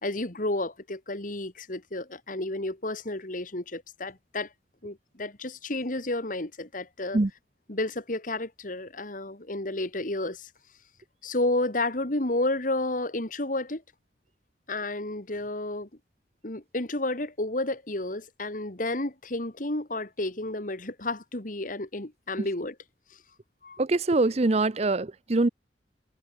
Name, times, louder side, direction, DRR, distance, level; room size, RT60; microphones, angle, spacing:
voice 1, 0.0-4.5 4.8-7.2 7.7-10.5 11.2-13.8 14.7-15.9 16.4-22.8 23.6-23.8, left 2 dB, 50° left, 2.4 m, -31 dB
voice 2, 23.8-25.5, right 2 dB, 35° right, 0.6 m, -23 dB
head